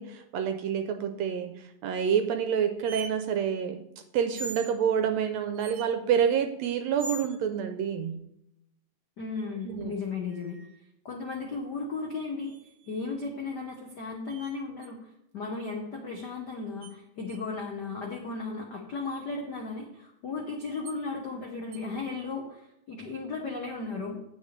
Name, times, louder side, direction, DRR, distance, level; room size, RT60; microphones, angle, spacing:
voice 1, 0.0-3.9 4.1-8.2 9.6-9.9, right 8 dB, 80° right, 7 dB, 1.6 m, -28 dB
sound 1, 2.8-3.1 4.3-4.7 5.5-5.9 7.0-7.4 10.3-10.8 12.4-13.1 14.3-14.5 14.8-14.9 16.8-16.9 17.3-17.4 19.0-19.2 20.8-21.0 21.7-21.8, right 2 dB, 60° right, 1.3 m, -42 dB
voice 2, 9.2-10.6 11.0-12.6 12.9-15.1 15.3-24.2, left 4 dB, 80° left, 0 dB, 0.9 m, -35 dB
9.6 x 8.0 x 3.2 m, 0.82 s
omnidirectional pair, 3.5 m